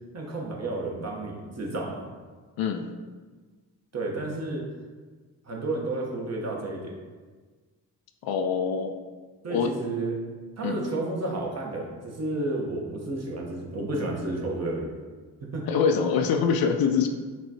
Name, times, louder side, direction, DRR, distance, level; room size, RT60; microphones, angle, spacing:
voice 1, 0.1-2.1 3.9-4.7 5.4-7.0 9.4-10.2 10.6-14.9 15.4-15.7, right 2 dB, 35° right, -1 dB, 1.0 m, -31 dB
voice 2, 2.6-2.9 8.2-8.9 9.5-9.7 10.6-10.9 15.7-17.1, left 6 dB, 55° left, 5 dB, 0.5 m, -24 dB
5.9 x 2.2 x 2.9 m, 1.4 s
hypercardioid pair, 45°, 44 cm